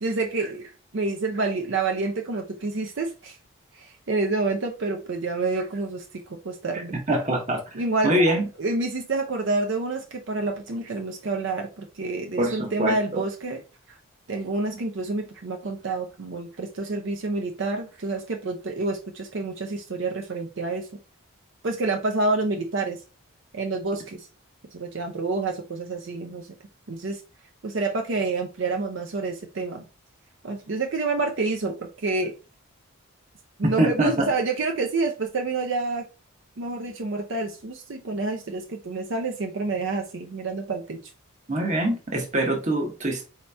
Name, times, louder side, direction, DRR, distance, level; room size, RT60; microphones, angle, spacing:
voice 1, 0.0-3.4 3.7-7.0 7.7-8.2 8.6-13.6 13.9-14.0 14.3-20.9 21.6-23.0 23.5-24.3 24.7-26.5 26.9-27.2 27.6-29.8 30.4-32.3 33.6-36.1 36.6-41.0, right 3 dB, 55° right, 0.5 m, -28 dB
voice 2, 7.1-7.6 8.0-8.5 12.4-13.2 33.8-34.3 41.5-43.2, right 1 dB, 30° right, 0.8 m, -24 dB
4.3 x 2.9 x 3.3 m
head